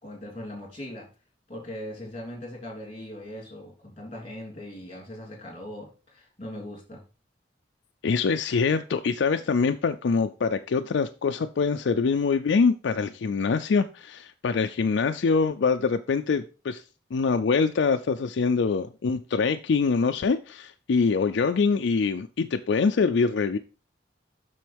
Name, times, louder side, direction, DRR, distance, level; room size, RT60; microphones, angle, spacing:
voice 1, 0.0-1.1 1.5-7.0, left 1 dB, 30° left, 3.1 m, -40 dB
voice 2, 8.0-16.8 17.1-23.6, left 5 dB, 70° left, 0.4 m, -24 dB
7.5 x 6.2 x 3.4 m
head